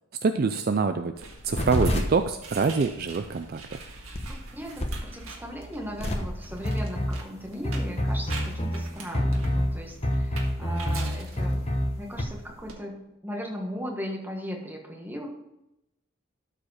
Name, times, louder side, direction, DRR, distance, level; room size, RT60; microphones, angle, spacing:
voice 1, 0.2-1.1 1.4-3.8, right 4 dB, 45° right, 8 dB, 0.4 m, -25 dB
sound 1, 1.2-12.7, right 3 dB, 80° right, 1.8 m, -44 dB
sound 2, 1.5-12.2, equal, 30° left, 1.0 m, -29 dB
voice 2, 4.0-15.3, equal, 10° right, 1 dB, 1.5 m, -38 dB
12.5 x 5.0 x 4.9 m, 0.89 s
head